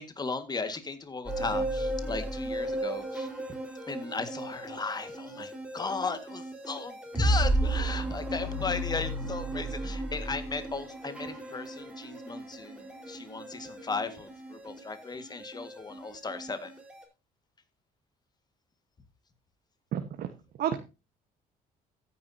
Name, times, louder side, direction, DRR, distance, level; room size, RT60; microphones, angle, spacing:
voice 1, 0.0-3.3 3.9-16.7, left 4 dB, 25° left, 10 dB, 1.8 m, -36 dB
sound 1, 1.3-17.0, right 1 dB, 5° right, 4.4 m, -34 dB
voice 2, 19.9-20.3 20.6-20.8, right 10 dB, 65° right, 7 dB, 1.3 m, -30 dB
13.5 x 9.8 x 2.8 m, 0.29 s
cardioid pair, 110°, 17 cm